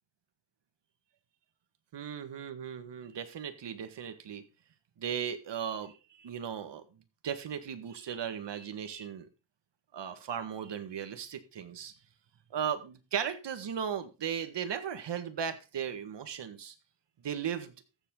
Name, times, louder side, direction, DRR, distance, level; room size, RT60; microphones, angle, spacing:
voice 1, 1.9-4.4 5.0-6.8 7.2-9.3 9.9-11.9 12.5-16.7 17.2-17.7, right 8 dB, 55° right, 9 dB, 1.9 m, -36 dB
14.5 x 7.4 x 3.8 m, 0.30 s
cardioid pair, 120°, 49 cm